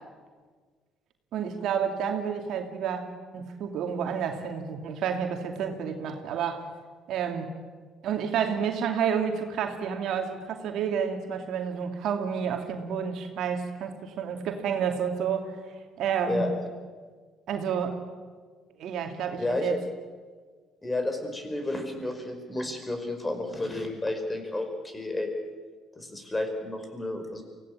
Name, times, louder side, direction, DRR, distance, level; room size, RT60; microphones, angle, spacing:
voice 1, 1.3-6.6 7.1-7.5 8.0-15.6 16.0-16.4 17.5-18.0 18.8-19.8, right 7 dB, 70° right, 4 dB, 2.5 m, -30 dB
voice 2, 19.4-19.7 20.8-25.3 26.0-27.4, left 2 dB, 20° left, 6 dB, 5.2 m, -31 dB
24.0 x 17.0 x 8.9 m, 1.5 s
supercardioid pair, 65°, 0 cm